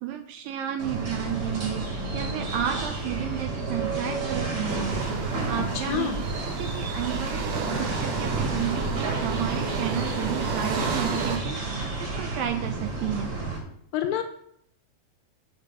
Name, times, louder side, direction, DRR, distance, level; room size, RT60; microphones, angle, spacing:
voice 1, 0.0-6.2 6.6-13.3, right 10 dB, 80° right, 6 dB, 2.1 m, -32 dB
sound 1, 0.8-13.6, right 3 dB, 35° right, 1.6 m, -31 dB
sound 2, 4.7-11.4, right 4 dB, 65° right, 2.4 m, -31 dB
voice 2, 5.8-6.2 13.9-14.2, left 9 dB, 75° left, 6 dB, 2.3 m, -27 dB
7.3 x 5.4 x 6.7 m, 0.68 s
omnidirectional pair, 4.5 m